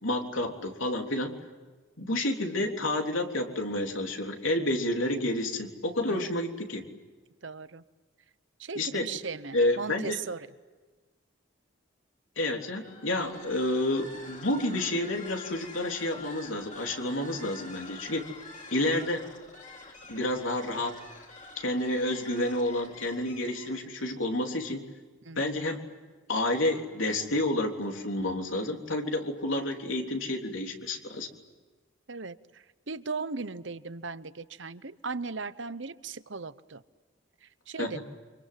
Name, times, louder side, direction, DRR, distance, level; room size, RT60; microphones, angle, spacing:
voice 1, 0.0-1.3 2.0-6.9 8.8-9.1 9.5-10.2 12.4-18.3 18.7-19.2 20.1-21.0 21.6-24.9 25.4-25.8 26.3-31.3 37.8-38.0, left 1 dB, 75° left, 3 dB, 3.5 m, -30 dB
voice 2, 7.4-7.8 8.6-10.5 25.2-25.6 32.1-36.8 37.4-38.0, right 4 dB, 65° right, 13 dB, 1.0 m, -38 dB
sound 1, 12.6-23.9, left 3 dB, 35° left, 4.2 m, -48 dB
29.0 x 26.0 x 7.7 m, 1.3 s
head